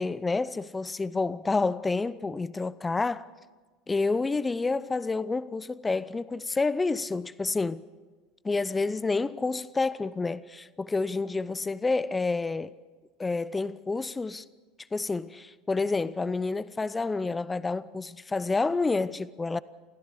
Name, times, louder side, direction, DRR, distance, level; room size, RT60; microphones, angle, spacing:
voice 1, 0.0-3.3 3.9-7.8 8.4-12.7 13.2-14.4 14.9-19.6, left 3 dB, 15° left, 0.7 m, -29 dB
25.5 x 16.0 x 6.8 m
figure-of-eight pair, 75°, 0 cm